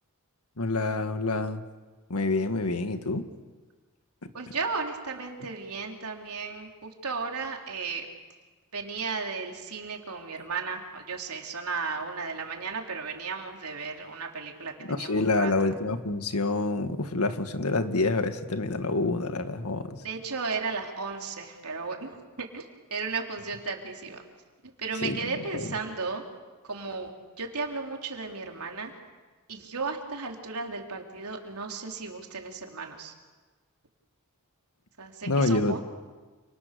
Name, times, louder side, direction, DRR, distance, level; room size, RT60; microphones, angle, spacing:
voice 1, 0.6-1.6 2.1-3.3 4.2-4.3 14.8-20.0 25.0-25.7 35.3-35.8, left 2 dB, 85° left, 8 dB, 1.8 m, -27 dB
voice 2, 4.3-8.1 8.7-15.5 20.0-24.2 24.8-26.2 26.6-27.1 27.4-28.9 29.5-33.1 35.0-35.8, right 4 dB, 85° right, 2 dB, 3.7 m, -35 dB
29.5 x 29.0 x 6.9 m, 1.3 s
head